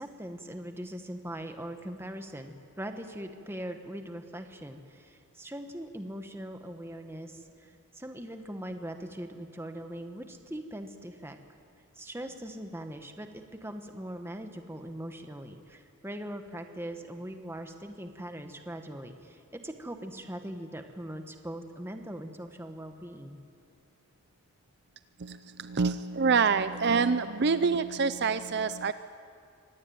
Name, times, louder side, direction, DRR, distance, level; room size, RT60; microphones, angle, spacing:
voice 1, 0.0-11.4 11.9-23.4 26.7-26.8, right 1 dB, 10° right, 6 dB, 1.3 m, -41 dB
voice 2, 25.2-28.9, right 5 dB, 50° right, 12 dB, 0.5 m, -26 dB
25.0 x 18.0 x 9.3 m, 2.4 s
head